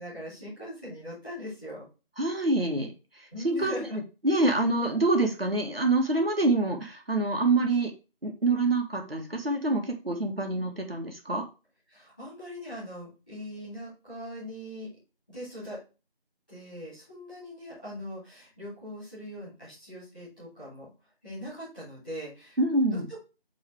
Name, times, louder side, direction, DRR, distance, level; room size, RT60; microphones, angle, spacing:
voice 1, 0.0-1.8 3.3-4.0 11.9-14.9 15.3-15.8 16.5-20.9 21.2-22.6 22.9-23.2, equal, 10° left, -12 dB, 2.8 m, -41 dB
voice 2, 2.2-2.9 3.4-7.9 8.2-11.5 22.6-23.1, right 2 dB, 75° right, 2 dB, 1.9 m, -26 dB
8.0 x 3.9 x 3.5 m, 0.30 s
figure-of-eight pair, 180°, 30 cm